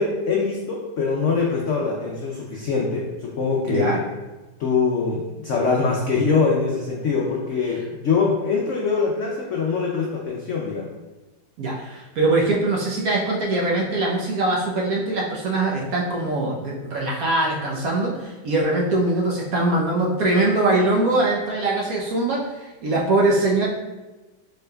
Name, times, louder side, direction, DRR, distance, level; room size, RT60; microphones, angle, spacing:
voice 1, 0.0-4.0 4.6-10.9, left 4 dB, 90° left, -2 dB, 0.6 m, -23 dB
voice 2, 3.7-4.0 11.6-23.7, right 2 dB, 65° right, -2 dB, 0.9 m, -22 dB
4.4 x 3.3 x 2.2 m, 1.1 s
omnidirectional pair, 2.0 m